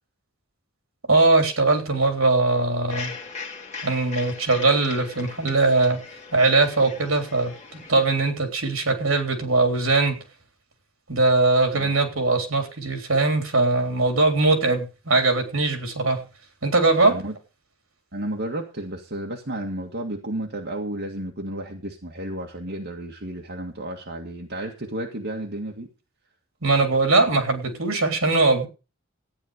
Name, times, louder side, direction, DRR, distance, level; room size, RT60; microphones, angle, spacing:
voice 1, 1.1-3.1 3.8-6.0 6.3-10.2 11.1-16.3 16.6-17.2 26.6-28.7, right 3 dB, 75° right, 5 dB, 3.7 m, -21 dB
sound 1, 2.9-7.9, left 5 dB, 35° left, 2.7 m, -39 dB
voice 2, 18.1-25.9, right 1 dB, 55° right, 0 dB, 1.9 m, -32 dB
14.5 x 9.6 x 5.1 m, 0.32 s
head